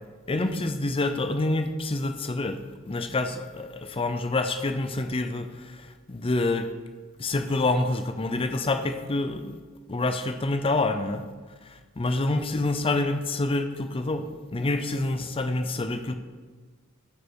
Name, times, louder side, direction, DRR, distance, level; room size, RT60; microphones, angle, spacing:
voice 1, 0.3-2.6 2.9-6.7 7.2-9.6 9.9-11.2 11.7-14.3 14.5-16.1, left 2 dB, 25° left, 8 dB, 0.5 m, -27 dB
8.3 x 5.3 x 4.7 m, 1.4 s
head